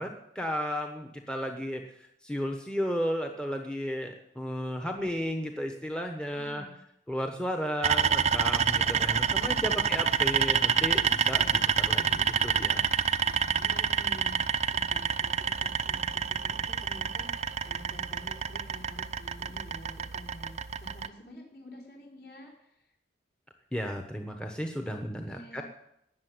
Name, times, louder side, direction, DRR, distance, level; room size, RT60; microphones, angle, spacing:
voice 1, 0.0-6.6 7.1-11.4 11.9-12.9 23.7-25.6, equal, 5° left, 3 dB, 1.1 m, -34 dB
voice 2, 6.3-6.8 11.3-12.0 13.2-22.9 24.9-25.0 25.3-25.6, equal, 60° left, -1 dB, 4.9 m, -49 dB
sound 1, 7.8-21.1, right 7 dB, 40° right, 0.6 m, -28 dB
18.5 x 6.9 x 9.5 m, 0.80 s
head